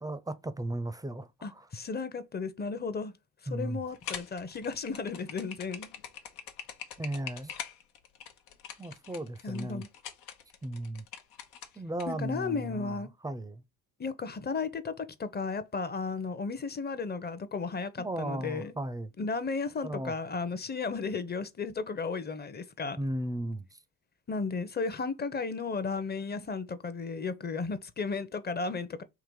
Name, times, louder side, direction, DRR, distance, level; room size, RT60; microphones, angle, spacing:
voice 1, 0.0-1.7 3.5-3.8 7.0-7.5 8.8-9.8 10.6-11.0 11.8-13.6 18.0-19.1 19.8-20.1 22.9-23.7, right 1 dB, 10° right, 0.5 m, -36 dB
voice 2, 1.4-3.1 3.5-5.9 9.4-9.9 12.1-13.1 14.0-18.7 19.2-23.0 24.3-29.0, left 4 dB, 25° left, 0.7 m, -34 dB
sound 1, 3.9-12.0, left 8 dB, 85° left, 0.9 m, -43 dB
3.8 x 3.0 x 4.6 m
supercardioid pair, 75°, 37 cm